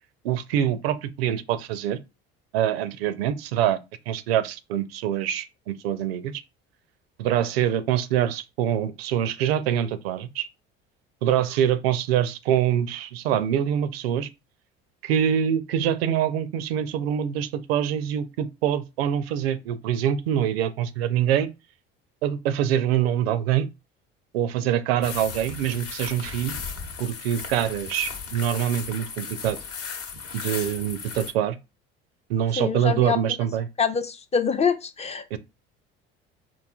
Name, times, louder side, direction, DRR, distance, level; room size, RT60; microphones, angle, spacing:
voice 1, 0.2-2.0 2.5-3.8 4.1-6.3 7.2-10.5 11.2-14.3 15.0-21.5 22.2-23.7 24.3-26.6 27.0-29.6 30.3-31.6 32.3-33.7 35.3-35.4, right 10 dB, 85° right, 0.5 m, -25 dB
sound 1, 25.0-31.3, left 5 dB, 50° left, 0.9 m, -36 dB
voice 2, 32.6-33.2 33.8-35.4, left 6 dB, 20° left, 0.4 m, -25 dB
3.9 x 2.6 x 2.3 m
hypercardioid pair, 75°, 30 cm